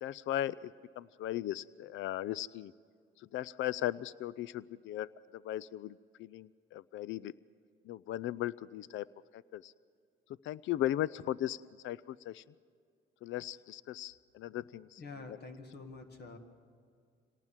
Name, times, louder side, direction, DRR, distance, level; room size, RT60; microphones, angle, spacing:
voice 1, 0.0-2.7 3.2-7.3 7.9-9.1 9.3-9.7 10.4-12.4 13.2-15.0 15.3-15.4, left 13 dB, 75° left, 19 dB, 0.5 m, -37 dB
voice 2, 15.0-16.4, left 3 dB, 55° left, 5 dB, 2.0 m, -47 dB
26.5 x 18.5 x 7.3 m, 2.2 s
cardioid pair, 90°, 20 cm